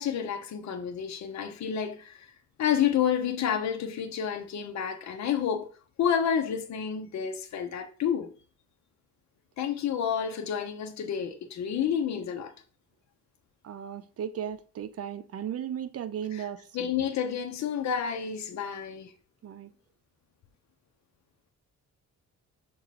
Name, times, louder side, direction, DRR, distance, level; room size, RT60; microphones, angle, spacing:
voice 1, 0.0-2.3 2.6-5.7 6.0-8.3 9.6-12.5 16.3-16.4 16.7-19.1, left 8 dB, 65° left, 1.1 m, -29 dB
voice 2, 13.6-16.9 19.4-19.7, right 9 dB, 50° right, 0.7 m, -36 dB
6.4 x 4.0 x 4.2 m
cardioid pair, 90°, 30 cm